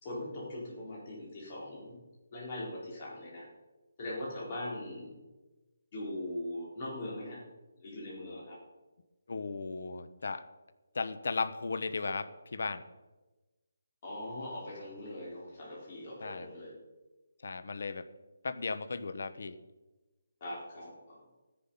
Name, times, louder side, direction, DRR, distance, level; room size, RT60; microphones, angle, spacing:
voice 1, 0.0-2.0 2.3-3.5 4.0-5.1 5.9-7.4 7.8-8.6 14.0-16.7 20.4-21.2, left 1 dB, 25° left, -5 dB, 4.3 m, -41 dB
voice 2, 9.3-10.5 10.9-12.8 16.2-16.5 17.4-18.1 18.4-19.6, left 4 dB, 50° left, 12 dB, 0.9 m, -36 dB
15.0 x 10.5 x 5.6 m, 1.1 s
hypercardioid pair, 180°, 0 cm